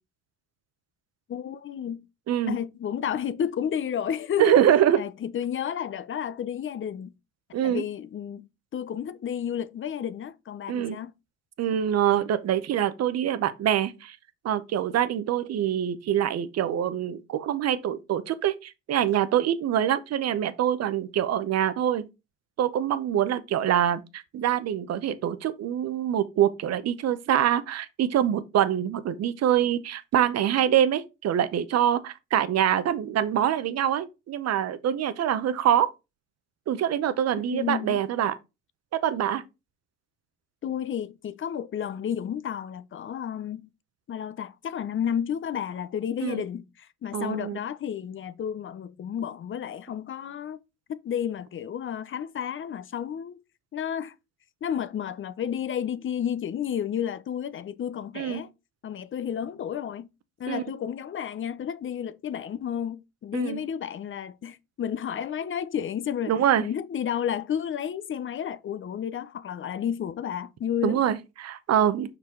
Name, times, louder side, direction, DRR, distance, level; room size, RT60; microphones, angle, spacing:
voice 1, 1.3-2.1 2.5-4.6 5.0-7.1 7.6-11.1 37.5-38.0 40.6-43.7 44.1-50.6 50.9-53.4 53.7-54.1 54.6-58.5 58.8-60.1 60.4-66.3 66.6-71.0, left 9 dB, 40° left, 0.7 m, -31 dB
voice 2, 2.3-2.6 4.4-5.0 7.5-7.8 10.7-11.0 11.6-14.2 14.4-22.0 22.6-35.9 36.7-38.4 39.0-39.4 46.2-46.4 47.1-47.6 58.1-58.4 60.5-60.6 63.3-63.6 66.3-66.6 70.8-72.2, right 10 dB, 55° right, 0.8 m, -25 dB
5.6 x 4.6 x 3.7 m
supercardioid pair, 85°, 31 cm